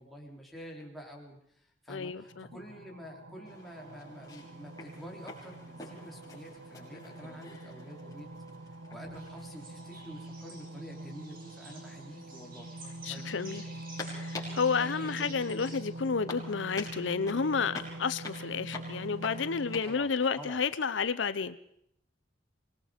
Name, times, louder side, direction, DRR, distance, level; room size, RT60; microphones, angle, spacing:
voice 1, 0.0-8.3 8.7-13.8 14.8-15.4 19.8-20.6, equal, ahead, 3.7 m, -48 dB
voice 2, 1.9-2.5 13.0-13.6 14.1-21.6, left 5 dB, 75° left, 0.7 m, -31 dB
sound 1, 2.2-19.8, right 1 dB, 75° right, 1.0 m, -44 dB
sound 2, 3.4-20.9, left 3 dB, 20° left, 5.9 m, -48 dB
sound 3, 9.1-15.9, right 2 dB, 50° right, 4.5 m, -52 dB
25.5 x 20.5 x 5.1 m
head